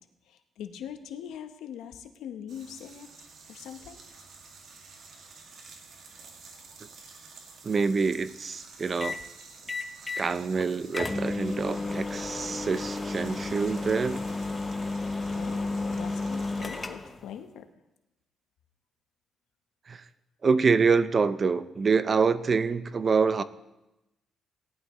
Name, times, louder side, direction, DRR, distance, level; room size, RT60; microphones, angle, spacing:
voice 1, 0.2-3.1 3.5-4.0 15.3-17.7, left 9 dB, 85° left, 8 dB, 0.9 m, -42 dB
sound 1, 2.5-16.9, right 4 dB, 70° right, 2.0 m, -50 dB
voice 2, 7.6-9.2 10.1-14.2 19.9-20.0 20.4-23.4, right 5 dB, 40° right, 14 dB, 0.5 m, -26 dB
sound 2, 9.0-9.2 9.7-10.3 10.6-10.7 10.9-17.2, left 3 dB, 20° left, 0.8 m, -32 dB
18.0 x 11.5 x 3.1 m, 0.96 s
cardioid pair, 90°, 0 cm